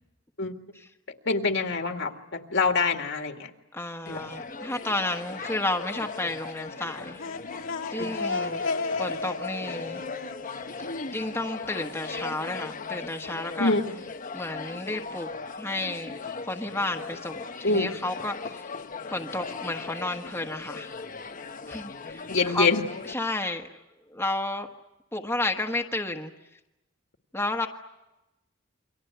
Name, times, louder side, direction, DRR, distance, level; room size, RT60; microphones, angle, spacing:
voice 1, 1.3-3.5 4.1-4.2 13.6-14.0 17.6-17.9 22.3-22.8, left 3 dB, 65° left, 4 dB, 2.2 m, -25 dB
voice 2, 3.7-7.2 7.9-8.6 9.0-10.0 11.1-13.7 14.3-15.3 15.6-16.2 16.5-18.7 19.1-20.9 21.7-22.7 23.1-23.7 24.1-24.7 25.1-26.3 27.3-27.7, left 2 dB, 15° left, 2 dB, 1.4 m, -32 dB
sound 1, 4.1-23.1, left 4 dB, 40° left, 1.0 m, -38 dB
sound 2, 7.0-11.7, left 4 dB, 80° left, 1.9 m, -34 dB
29.0 x 24.5 x 8.1 m, 0.97 s
head